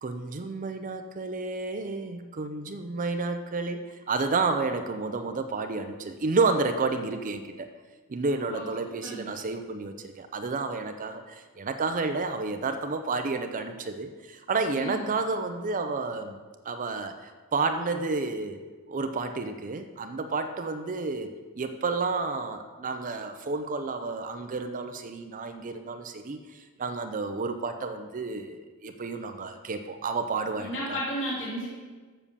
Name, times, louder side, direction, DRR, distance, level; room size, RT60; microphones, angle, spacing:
voice 1, 0.0-7.7 8.1-16.4 16.6-18.6 18.9-31.0, right 3 dB, 35° right, 8 dB, 0.5 m, -31 dB
voice 2, 9.0-9.3 14.7-15.0 30.6-31.7, equal, 55° left, -8 dB, 3.3 m, -33 dB
7.2 x 6.9 x 6.9 m, 1.4 s
head